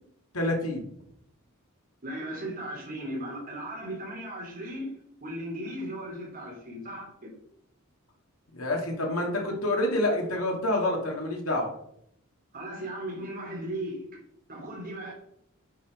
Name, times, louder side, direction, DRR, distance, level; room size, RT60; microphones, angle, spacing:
voice 1, 0.3-0.8 8.5-11.7, left 1 dB, 85° left, 2.6 m, -27 dB
voice 2, 2.0-7.3 12.5-14.2 14.5-15.1, right 1 dB, 45° right, 3.5 m, -37 dB
8.3 x 6.2 x 5.3 m
head